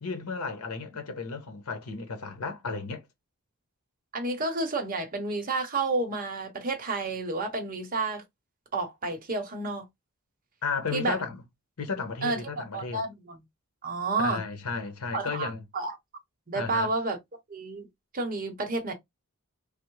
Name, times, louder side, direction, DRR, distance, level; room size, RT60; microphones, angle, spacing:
voice 1, 0.0-3.0 10.6-11.4 11.8-13.0 14.2-15.6 16.5-16.9, left 4 dB, 85° left, 0.8 m, -33 dB
voice 2, 4.1-8.2 8.7-9.8 10.9-11.2 12.2-13.4 13.8-14.4 15.1-15.9 16.5-17.2 17.5-17.9 18.1-18.9, right 3 dB, 40° right, 0.8 m, -30 dB
3.4 x 2.0 x 3.0 m
head